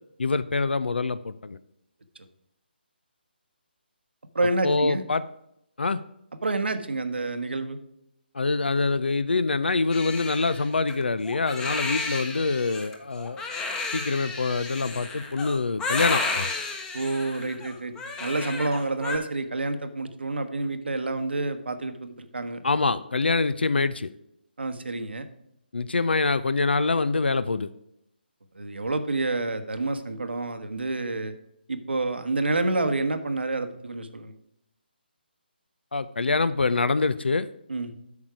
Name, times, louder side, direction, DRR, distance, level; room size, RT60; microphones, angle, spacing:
voice 1, 0.2-1.6 4.6-5.2 5.8-6.0 8.3-13.4 13.9-16.5 22.6-24.1 25.7-27.7 35.9-37.5, left 3 dB, 75° left, 15 dB, 0.5 m, -25 dB
voice 2, 4.3-5.0 6.4-7.8 16.9-17.9 18.2-22.6 24.6-25.3 28.5-31.3 31.7-34.3 37.7-37.9, right 2 dB, 75° right, 9 dB, 1.2 m, -28 dB
Crying sobbing, 9.9-19.2, left 3 dB, 10° left, 0.9 m, -32 dB
8.4 x 6.4 x 4.7 m, 0.79 s
figure-of-eight pair, 145°, 6 cm